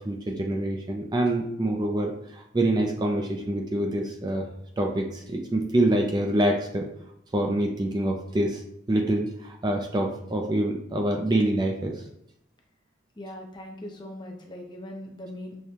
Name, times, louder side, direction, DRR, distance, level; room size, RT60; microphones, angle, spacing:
voice 1, 0.0-4.5 4.8-6.9 7.3-8.6 8.9-12.0, right 1 dB, 20° right, 2 dB, 0.3 m, -26 dB
voice 2, 13.2-15.6, left 1 dB, 20° left, 2 dB, 0.6 m, -40 dB
6.5 x 2.2 x 2.8 m, 0.76 s
head